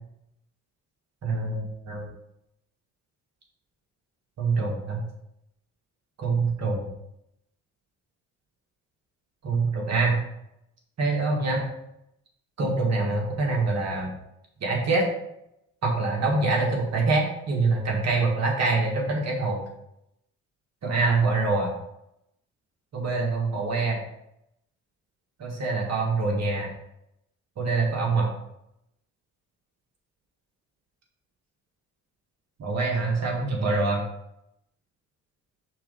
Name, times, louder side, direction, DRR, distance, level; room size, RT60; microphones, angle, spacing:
voice 1, 1.2-2.1 4.4-5.0 6.2-6.9 9.4-10.2 11.0-11.6 12.6-14.1 14.6-15.0 15.8-19.6 20.8-21.7 22.9-24.0 25.4-26.7 27.6-28.3 32.6-34.0, right 3 dB, 60° right, -1 dB, 1.7 m, -25 dB
5.9 x 3.7 x 5.5 m, 0.81 s
cardioid pair, 90°, 30 cm